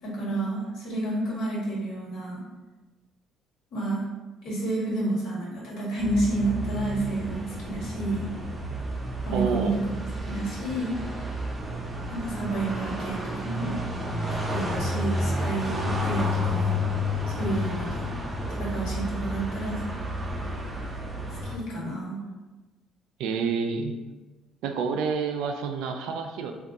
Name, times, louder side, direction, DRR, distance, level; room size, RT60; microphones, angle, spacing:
voice 1, 0.0-2.4 3.7-4.0 4.4-8.3 9.2-10.9 12.1-13.8 14.3-16.8 17.3-18.0 18.5-19.8 21.3-22.2, right 2 dB, 65° left, -5 dB, 1.2 m, -30 dB
sound 1, 6.0-21.6, left 1 dB, 15° right, 0.4 m, -31 dB
voice 2, 9.3-9.8 23.2-23.9 24.6-26.5, right 5 dB, 90° right, 5 dB, 0.3 m, -28 dB
3.5 x 2.3 x 2.6 m, 1.2 s
cardioid pair, 160°, 0 cm